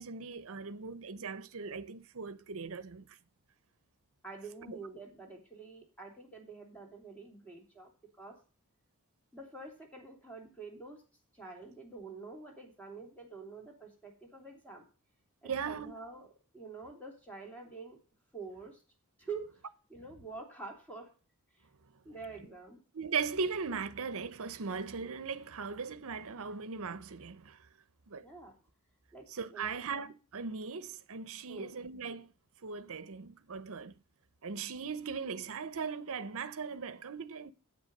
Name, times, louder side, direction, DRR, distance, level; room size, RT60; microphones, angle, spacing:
voice 1, 0.0-3.1 4.6-4.8 15.4-15.9 22.9-27.6 28.1-28.3 29.3-32.3 32.6-33.9 34.4-37.5, right 5 dB, 70° right, 0.8 m, -38 dB
voice 2, 4.2-7.9 8.2-8.4 9.3-11.0 11.4-14.8 15.4-18.0 18.3-18.8 19.2-19.5 19.9-21.1 22.0-22.8 28.2-28.5 29.1-29.8 31.5-31.7, right 4 dB, 5° left, 3.4 m, -47 dB
9.4 x 8.1 x 5.4 m
head